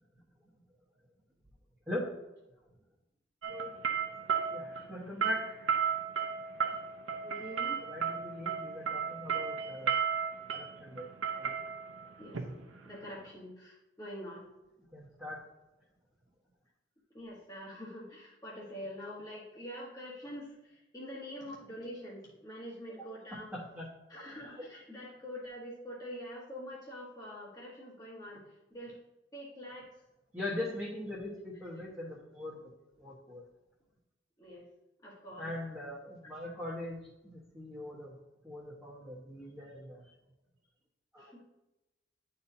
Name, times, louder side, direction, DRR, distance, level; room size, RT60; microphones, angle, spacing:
sound 1, 3.4-13.3, right 7 dB, 85° right, 0.8 m, -34 dB
voice 1, 4.5-5.8 7.8-10.0 10.5-11.1 11.3-11.6 14.9-15.4 23.5-23.9 24.6-24.7 30.3-32.6 33.0-33.4 35.4-38.2 38.4-40.1 41.1-41.4, left 1 dB, 10° right, -10 dB, 1.1 m, -41 dB
voice 2, 7.2-7.8 12.2-12.4 12.8-14.4 17.1-23.5 24.1-28.4 28.7-28.9 29.3-29.9 34.4-34.6 35.0-35.5 36.4-36.5 41.2-41.4, equal, 20° left, -5 dB, 1.1 m, -45 dB
10.5 x 4.2 x 2.7 m, 0.97 s
head